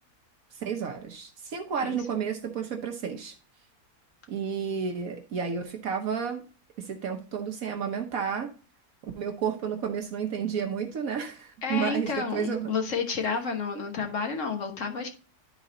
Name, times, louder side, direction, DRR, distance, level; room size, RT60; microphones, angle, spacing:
voice 1, 0.5-3.3 4.3-6.4 6.8-8.5 9.0-12.7, right 7 dB, 65° right, 4 dB, 1.3 m, -31 dB
voice 2, 11.6-15.1, left 5 dB, 55° left, 3 dB, 1.5 m, -30 dB
11.0 x 4.1 x 3.7 m, 0.37 s
omnidirectional pair, 1.6 m